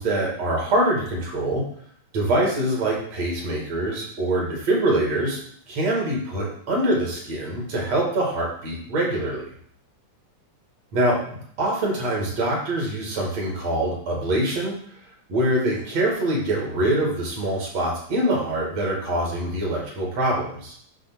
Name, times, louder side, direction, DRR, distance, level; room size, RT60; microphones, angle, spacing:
voice 1, 0.0-1.6 2.1-5.4 5.7-9.4 10.9-11.3 11.6-14.7 15.3-20.7, right 1 dB, 55° right, -2 dB, 3.2 m, -24 dB
10.0 x 3.5 x 6.1 m, 0.63 s
omnidirectional pair, 3.6 m